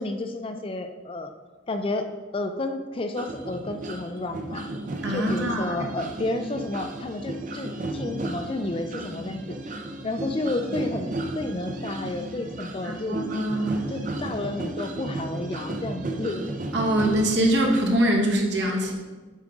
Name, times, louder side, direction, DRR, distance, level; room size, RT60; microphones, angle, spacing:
voice 1, 0.0-1.3 1.7-4.7 5.1-13.2 13.9-16.5, left 2 dB, 30° left, 7 dB, 0.4 m, -31 dB
sound 1, 3.1-17.8, right 2 dB, 40° right, 0.6 m, -34 dB
voice 2, 5.0-5.8 13.1-13.9 16.7-18.9, right 1 dB, 65° right, 0 dB, 1.2 m, -23 dB
8.3 x 5.0 x 3.6 m, 1.3 s
head